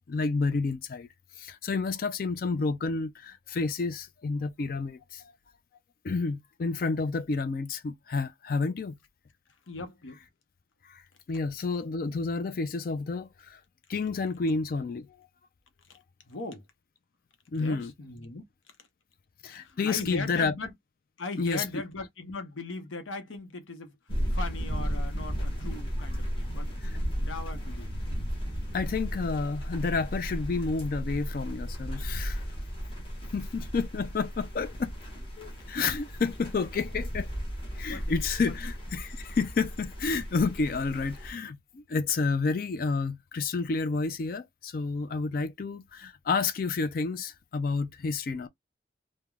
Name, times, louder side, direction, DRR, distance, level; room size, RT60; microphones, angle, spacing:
voice 1, 0.1-1.1 1.3-5.3 6.0-9.0 10.8-13.6 13.9-15.3 17.5-17.9 19.4-20.5 21.4-21.6 26.8-27.0 28.7-32.4 33.3-34.9 35.4-37.3 37.8-48.5, left 4 dB, 45° left, 0.3 m, -30 dB
voice 2, 9.7-10.2 15.9-16.0 16.2-16.6 17.5-18.9 19.6-20.7 21.2-26.7 27.2-28.0 33.1-33.2 37.9-38.1 38.4-38.6 45.0-45.1 48.0-48.1, left 3 dB, 90° left, 0.8 m, -39 dB
sound 1, 24.1-41.3, equal, 30° left, 1.1 m, -35 dB
3.3 x 2.1 x 2.3 m
head